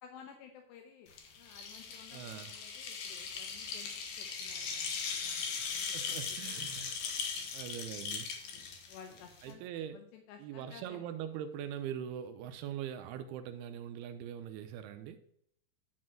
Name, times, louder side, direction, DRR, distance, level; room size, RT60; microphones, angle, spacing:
voice 1, 0.0-1.1 1.4-3.9 4.2-6.2 6.5-6.7 7.0-7.3 8.4-9.6 9.9-11.1, left 7 dB, 80° left, 3.0 m, -55 dB
sound 1, 1.1-9.5, left 6 dB, 65° left, 2.6 m, -39 dB
voice 2, 2.1-2.5 5.6-7.0 7.5-8.3 9.4-10.0 10.4-15.2, right 9 dB, 80° right, 2.4 m, -42 dB
10.0 x 4.1 x 7.5 m
omnidirectional pair, 4.9 m